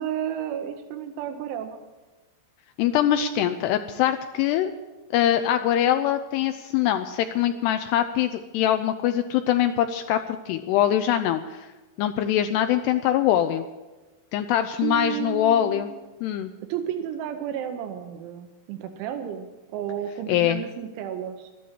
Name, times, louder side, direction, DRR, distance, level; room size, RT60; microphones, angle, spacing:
voice 1, 0.0-1.8 14.8-16.0 16.7-21.5, right 9 dB, 85° right, 5 dB, 3.2 m, -32 dB
voice 2, 2.8-4.7 5.1-11.7 12.0-13.7 14.3-15.9 16.2-16.5 20.3-20.6, left 11 dB, 85° left, 8 dB, 2.4 m, -23 dB
13.0 x 11.0 x 7.3 m, 1.2 s
omnidirectional pair, 5.3 m